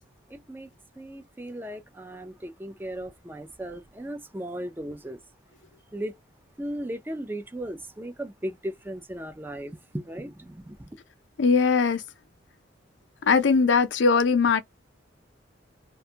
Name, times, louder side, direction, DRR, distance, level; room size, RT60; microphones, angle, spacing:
voice 1, 0.3-0.7 1.0-5.2 5.9-6.1 6.6-10.9, right 1 dB, 10° right, 0.4 m, -36 dB
voice 2, 11.4-12.0 13.2-14.6, left 5 dB, 75° left, 0.5 m, -20 dB
2.5 x 2.2 x 2.7 m
head